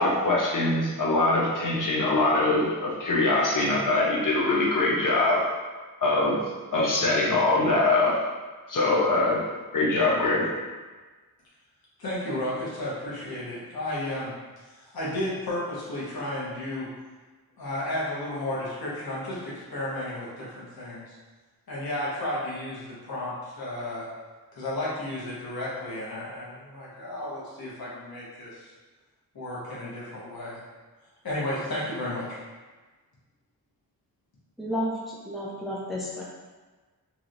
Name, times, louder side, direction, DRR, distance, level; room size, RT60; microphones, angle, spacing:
voice 1, 0.0-5.5 6.0-6.4 6.7-8.2 8.7-9.4 9.7-10.5, left 2 dB, 60° left, -4 dB, 0.7 m, -23 dB
voice 2, 12.0-14.3 14.7-16.9 17.6-21.1 21.7-24.1 24.5-28.7 29.3-30.6 31.2-32.4, left 1 dB, 75° left, -8 dB, 1.1 m, -33 dB
voice 3, 34.6-36.2, equal, ahead, -5 dB, 0.5 m, -31 dB
3.0 x 2.8 x 2.5 m, 1.3 s
wide cardioid pair, 125°, 37 cm